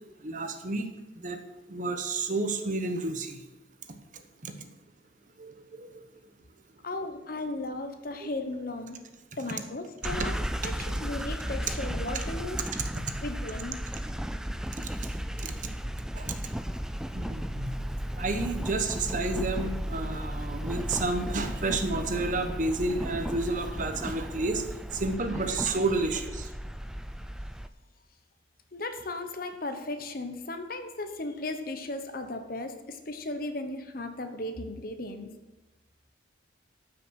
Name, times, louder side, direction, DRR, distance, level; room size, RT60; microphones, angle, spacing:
voice 1, 0.2-0.9 1.2-1.4 1.7-3.4 4.4-4.5 5.4-6.0 8.2-8.3 10.6-10.7 15.4-15.5 16.2-16.4 17.1-17.7 18.2-24.6 24.9-26.5, right 2 dB, 40° right, 7 dB, 1.0 m, -30 dB
voice 2, 6.8-9.0 9.4-12.6 13.2-13.8 28.7-35.3, left 2 dB, 50° left, 7 dB, 1.0 m, -36 dB
sound 1, 10.0-27.7, equal, 5° right, 0.3 m, -35 dB
12.5 x 6.1 x 6.3 m, 1.1 s
head